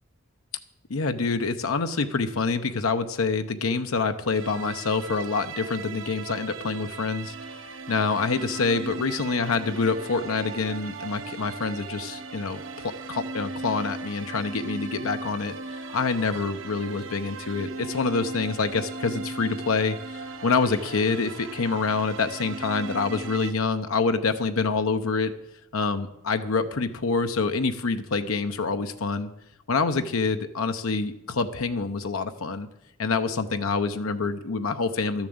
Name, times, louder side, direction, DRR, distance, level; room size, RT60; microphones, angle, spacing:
voice 1, 0.9-7.3 7.9-25.3 25.7-29.3 29.7-32.7 33.0-35.3, left 4 dB, 85° left, 8 dB, 0.8 m, -26 dB
sound 1, 4.3-23.5, right 3 dB, 70° right, 1.1 m, -38 dB
12.5 x 7.2 x 7.9 m, 0.85 s
head